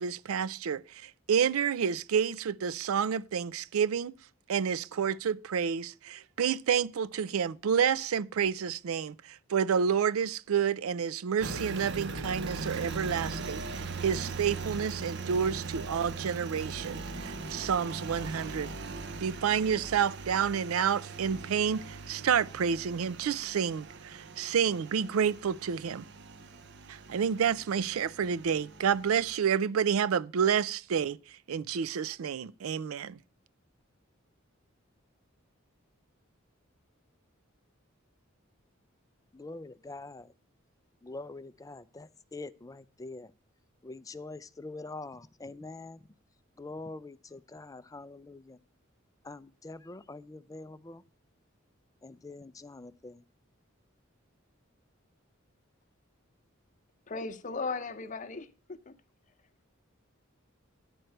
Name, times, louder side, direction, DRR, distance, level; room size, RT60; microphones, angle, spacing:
voice 1, 0.0-4.1 4.5-18.7 19.2-26.0 26.9-31.2 31.5-33.2, right 7 dB, 90° right, 0.4 m, -29 dB
Engine, 11.4-29.3, right 3 dB, 55° right, 0.7 m, -40 dB
voice 2, 39.3-40.3 41.0-43.3 43.8-46.0 46.6-48.6 49.2-51.0 52.0-53.2, left 2 dB, 15° left, 0.4 m, -44 dB
voice 3, 57.1-58.9, left 4 dB, 40° left, 0.8 m, -37 dB
10.5 x 4.5 x 7.7 m
head